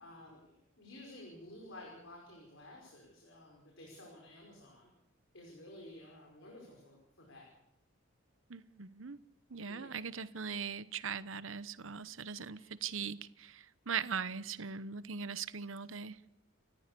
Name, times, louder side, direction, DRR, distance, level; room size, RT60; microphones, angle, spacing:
voice 1, 0.0-4.9 5.3-7.5 9.7-10.1 12.5-12.7, left 1 dB, 65° left, -1 dB, 5.6 m, -53 dB
voice 2, 8.5-9.2 9.5-16.2, right 6 dB, 70° right, 15 dB, 1.0 m, -40 dB
29.0 x 14.5 x 6.9 m, 0.81 s
head